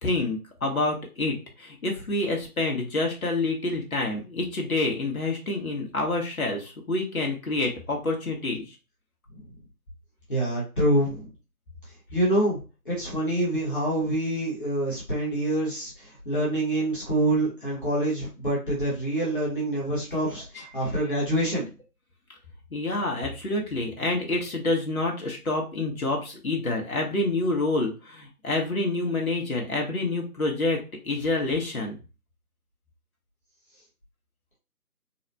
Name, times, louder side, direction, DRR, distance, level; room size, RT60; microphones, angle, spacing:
voice 1, 0.0-8.7 20.5-20.7 22.7-30.8 31.0-32.0, left 2 dB, 65° left, 1 dB, 1.2 m, -27 dB
voice 2, 10.3-11.3 12.1-12.6 12.8-21.7, right 1 dB, 35° left, -7 dB, 1.2 m, -26 dB
4.0 x 2.1 x 2.6 m, 0.31 s
figure-of-eight pair, 160°, 46 cm